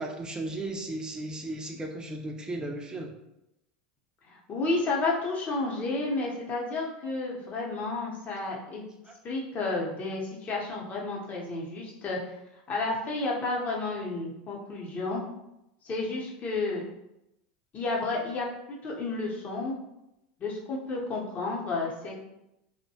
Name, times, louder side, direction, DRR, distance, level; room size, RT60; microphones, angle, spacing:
voice 1, 0.0-3.1 9.1-9.2, right 2 dB, 15° right, 2 dB, 0.5 m, -35 dB
voice 2, 4.3-8.8 9.2-12.3 12.7-15.2 15.8-16.8 17.7-19.7 20.4-22.2, left 3 dB, 35° left, -2 dB, 0.8 m, -31 dB
2.6 x 2.2 x 2.7 m, 0.86 s
supercardioid pair, 110°, 5 cm